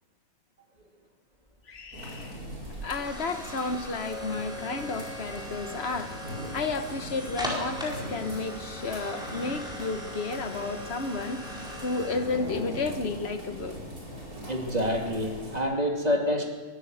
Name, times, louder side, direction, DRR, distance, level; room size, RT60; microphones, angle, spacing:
sound 1, 1.5-14.5, left 1 dB, 5° right, 5.0 m, -40 dB
voice 1, 1.7-2.4 2.8-6.1 6.5-11.4 11.8-13.8, left 3 dB, 45° left, 8 dB, 1.5 m, -32 dB
sound 2, 1.9-15.6, equal, 90° right, 5.0 m, -41 dB
voice 2, 14.5-16.5, equal, 25° right, 1 dB, 2.7 m, -27 dB
23.0 x 14.5 x 8.0 m, 1.4 s
omnidirectional pair, 1.5 m